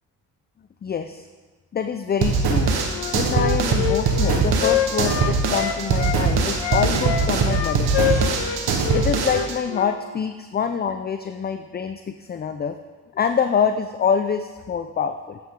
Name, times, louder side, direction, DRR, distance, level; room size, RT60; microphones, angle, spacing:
voice 1, 0.8-1.3 1.7-2.7 3.1-8.2 8.9-12.8 13.1-15.4, left 6 dB, 25° left, 8 dB, 0.4 m, -25 dB
sound 1, 2.2-9.5, right 4 dB, 65° right, 1.3 m, -22 dB
Wind instrument woodwind instrument, 2.9-6.2 6.6-10.0, left 10 dB, 75° left, 0.9 m, -26 dB
8.9 x 7.4 x 3.7 m, 1.3 s
supercardioid pair, 65°, 42 cm